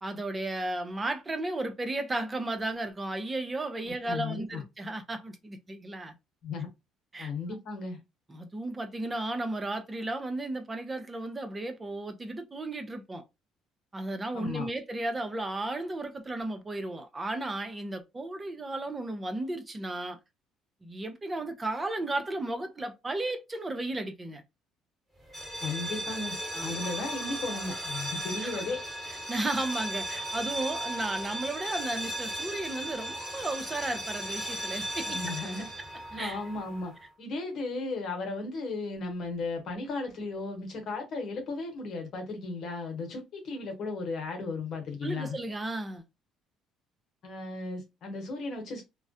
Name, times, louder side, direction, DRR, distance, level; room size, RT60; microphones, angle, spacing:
voice 1, 0.0-6.1 7.1-7.3 8.3-13.2 13.9-20.2 20.8-24.4 26.5-26.8 28.4-28.6 29.1-35.2 36.2-36.4 45.0-46.0, right 2 dB, 25° right, 0.5 m, -34 dB
voice 2, 3.8-4.6 6.4-6.7 7.2-8.0 14.3-14.7 25.6-28.8 35.1-35.7 36.1-36.9 37.2-45.4 47.2-48.8, left 3 dB, 60° left, 1.0 m, -35 dB
sound 1, 25.3-37.0, right 1 dB, ahead, 1.2 m, -36 dB
2.3 x 2.1 x 2.6 m
supercardioid pair, 80°, 0 cm